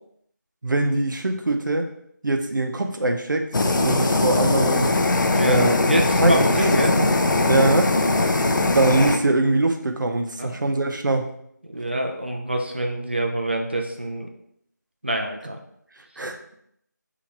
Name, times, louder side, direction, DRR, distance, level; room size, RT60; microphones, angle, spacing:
voice 1, 0.6-1.9 2.2-3.4 3.8-5.0 5.4-5.8 6.2-6.5 7.0-7.1 7.5-7.9 8.7-11.3 16.2-16.4, right 2 dB, 90° right, 5 dB, 0.6 m, -22 dB
Fire, 3.5-9.2, left 2 dB, 90° left, 0.5 m, -20 dB
voice 2, 5.3-6.9 10.4-10.6 11.6-14.3 15.0-15.6, right 1 dB, 35° right, 2 dB, 0.4 m, -26 dB
2.9 x 2.5 x 4.1 m, 0.72 s
figure-of-eight pair, 180°, 10 cm